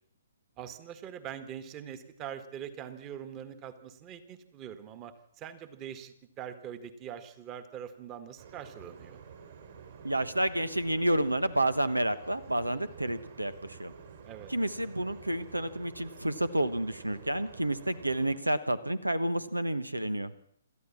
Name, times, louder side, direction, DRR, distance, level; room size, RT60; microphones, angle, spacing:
voice 1, 0.6-9.2 14.2-14.5, right 9 dB, 20° right, 11 dB, 1.8 m, -43 dB
sound 1, 8.4-18.4, right 6 dB, 45° right, 4.1 m, -50 dB
voice 2, 10.0-13.9 14.5-20.3, right 1 dB, 85° right, 15 dB, 1.2 m, -30 dB
27.0 x 13.5 x 7.4 m, 0.70 s
figure-of-eight pair, 125°, 0 cm